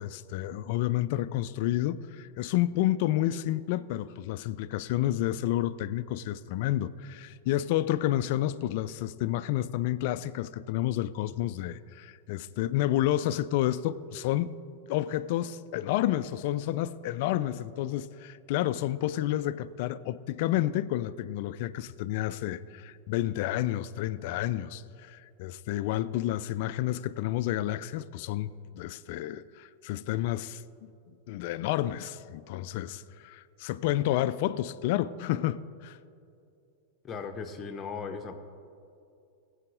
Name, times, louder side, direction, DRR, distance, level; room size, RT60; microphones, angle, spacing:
voice 1, 0.0-14.6 14.9-30.9 31.3-36.0, left 13 dB, 50° left, 0.3 m, -30 dB
voice 2, 37.0-38.3, left 5 dB, 25° left, 0.8 m, -37 dB
22.0 x 8.0 x 2.6 m
figure-of-eight pair, 90°, 0 cm